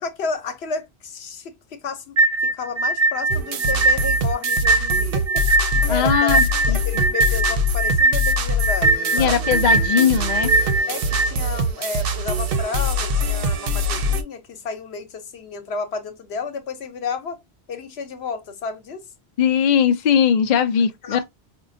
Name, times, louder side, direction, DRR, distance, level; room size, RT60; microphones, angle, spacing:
voice 1, 0.0-9.5 10.9-17.4 17.7-19.1 21.0-21.2, left 4 dB, 75° left, 1.0 m, -32 dB
sound 1, 2.2-11.3, right 2 dB, 40° right, 0.4 m, -20 dB
sound 2, 3.3-14.2, equal, 65° right, 0.8 m, -23 dB
voice 2, 5.9-6.8 9.1-10.5 19.4-21.2, left 8 dB, 55° left, 0.6 m, -19 dB
5.1 x 2.2 x 2.6 m
omnidirectional pair, 1.1 m